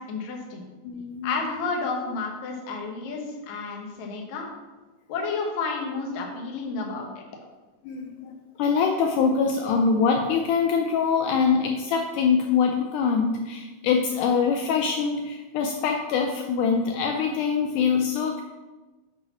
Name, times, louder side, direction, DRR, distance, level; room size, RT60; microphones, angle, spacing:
voice 1, 0.1-0.7 1.2-4.5 5.1-7.2, left 4 dB, 60° left, 0 dB, 2.1 m, -31 dB
voice 2, 0.8-1.4 7.8-18.4, left 5 dB, 90° left, 3 dB, 1.7 m, -24 dB
8.2 x 3.9 x 5.6 m, 1.2 s
omnidirectional pair, 4.2 m